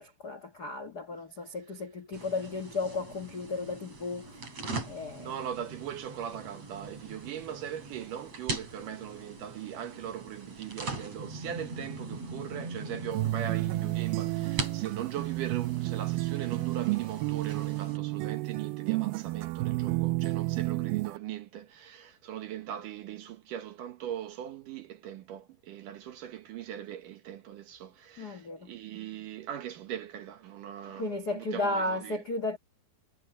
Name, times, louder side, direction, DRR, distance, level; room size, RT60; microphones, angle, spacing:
voice 1, 0.0-4.6 4.9-5.3 28.2-28.7 30.9-32.6, left 2 dB, 80° left, 0.8 m, -34 dB
sound 1, 2.1-18.0, right 3 dB, 40° right, 6.9 m, -41 dB
voice 2, 5.2-32.2, right 10 dB, 65° right, 2.4 m, -40 dB
sound 2, 13.1-21.2, right 20 dB, 80° right, 2.1 m, -31 dB
omnidirectional pair, 4.7 m